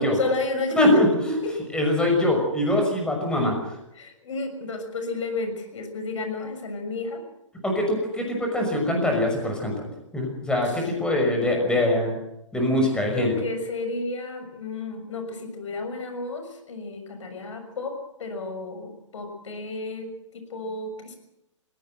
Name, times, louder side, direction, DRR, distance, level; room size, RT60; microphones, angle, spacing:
voice 1, 0.0-0.8 1.3-1.5 4.0-7.2 10.7-10.8 12.9-17.9 18.2-20.1 20.3-21.2, left 2 dB, 70° left, 6 dB, 6.4 m, -32 dB
voice 2, 0.8-1.1 1.7-3.6 7.6-9.7 10.1-12.2 12.5-13.3, left 1 dB, 5° left, 2 dB, 6.0 m, -23 dB
21.0 x 17.5 x 8.0 m, 0.85 s
hypercardioid pair, 140°, 16 cm